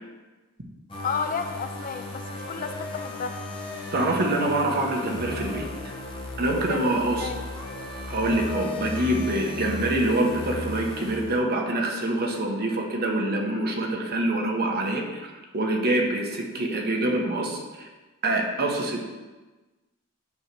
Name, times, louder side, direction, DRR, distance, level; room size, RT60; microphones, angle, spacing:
sound 1, 0.9-11.7, left 2 dB, 25° left, 1.1 m, -35 dB
voice 1, 1.0-3.4 6.5-7.4, left 5 dB, 40° left, 8 dB, 0.4 m, -32 dB
voice 2, 3.9-5.7 6.4-7.3 8.1-17.9 18.2-19.0, right 1 dB, 50° right, 1 dB, 1.1 m, -25 dB
8.5 x 3.1 x 6.0 m, 1.2 s
head